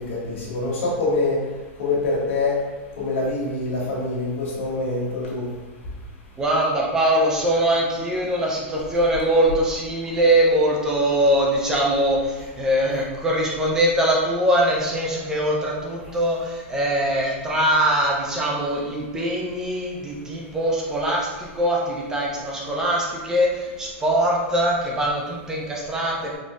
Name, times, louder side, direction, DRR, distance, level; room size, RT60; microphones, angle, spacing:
voice 1, 0.0-1.4 1.8-2.6 3.0-5.5, left 2 dB, 75° left, -5 dB, 1.4 m, -25 dB
voice 2, 6.4-26.4, right 1 dB, 10° right, -3 dB, 0.5 m, -22 dB
4.2 x 2.8 x 2.4 m, 1.3 s
supercardioid pair, 170°, 7 cm